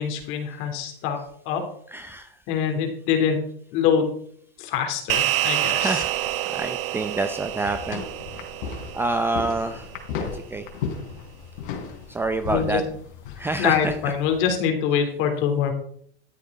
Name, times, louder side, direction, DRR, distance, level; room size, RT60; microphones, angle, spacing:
voice 1, 0.0-1.2 1.4-1.7 2.5-4.2 4.6-6.0 12.5-12.8 13.6-15.7, left 7 dB, 45° left, 5 dB, 3.3 m, -24 dB
voice 2, 1.9-2.4 5.7-6.2 6.5-8.0 8.6-10.7 12.1-12.8 13.4-14.1, right 2 dB, 10° right, 8 dB, 0.6 m, -28 dB
sound 1, 5.1-9.7, right 14 dB, 70° right, 0.9 m, -27 dB
sound 2, 5.7-14.6, left 6 dB, 60° left, 3.5 m, -36 dB
13.0 x 8.0 x 4.8 m, 0.62 s
supercardioid pair, 135°, 29 cm